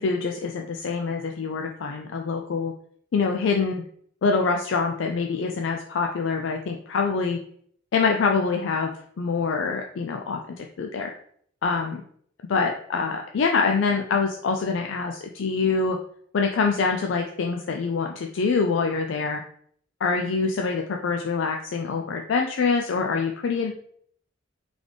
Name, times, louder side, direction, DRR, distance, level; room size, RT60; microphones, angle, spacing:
voice 1, 0.0-2.7 3.1-3.8 4.2-7.4 7.9-11.1 11.6-12.0 12.5-16.0 16.3-19.4 20.0-23.7, left 4 dB, 65° left, 3 dB, 0.4 m, -25 dB
4.0 x 3.3 x 3.2 m, 0.62 s
head